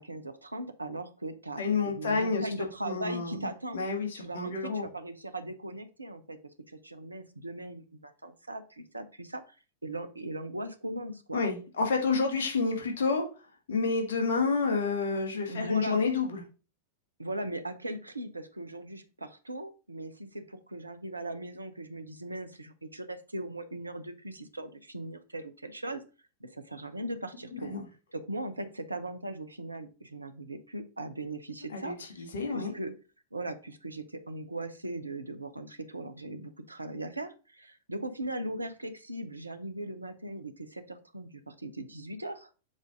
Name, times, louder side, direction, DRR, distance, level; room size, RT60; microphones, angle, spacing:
voice 1, 0.0-3.8 4.1-6.4 6.7-9.4 9.8-11.4 15.5-16.0 17.2-26.0 26.4-27.7 28.1-32.9 33.3-42.5, right 1 dB, 80° right, 10 dB, 0.6 m, -39 dB
voice 2, 1.6-2.5 2.8-3.5 3.7-4.8 11.3-13.3 13.7-16.4 27.6-27.8 31.7-32.7, left 4 dB, 65° left, 2 dB, 1.7 m, -29 dB
7.3 x 2.6 x 4.9 m, 0.34 s
figure-of-eight pair, 90°, 0 cm